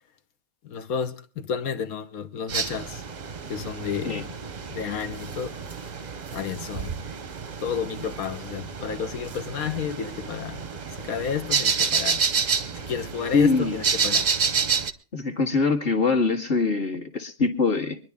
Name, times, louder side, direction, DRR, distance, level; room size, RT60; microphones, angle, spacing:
voice 1, 0.6-3.0 3.5-4.3 4.7-5.6 6.3-7.0 7.6-12.2 12.7-14.3, left 7 dB, 80° left, 1.5 m, -31 dB
sound 1, 2.5-14.9, right 5 dB, 40° right, 0.7 m, -29 dB
voice 2, 13.3-13.8 15.1-18.0, left 4 dB, 40° left, 1.8 m, -23 dB
24.5 x 10.5 x 3.5 m
omnidirectional pair, 1.5 m